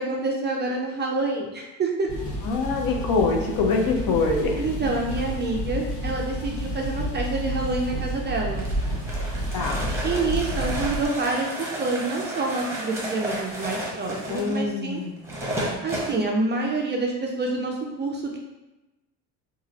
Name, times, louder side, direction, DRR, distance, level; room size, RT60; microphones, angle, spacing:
voice 1, 0.0-2.1 4.6-8.7 10.0-15.0 15.8-18.4, right 3 dB, 30° right, 0 dB, 0.4 m, -27 dB
sound 1, 2.1-11.1, equal, 85° left, 1.4 m, -30 dB
voice 2, 2.4-4.6 9.5-9.9 14.3-15.3, left 4 dB, 60° left, 2 dB, 0.7 m, -24 dB
sound 2, 8.6-16.2, right 1 dB, 5° right, 0.8 m, -32 dB
3.1 x 2.4 x 3.9 m, 1.0 s
cardioid pair, 130°, 40 cm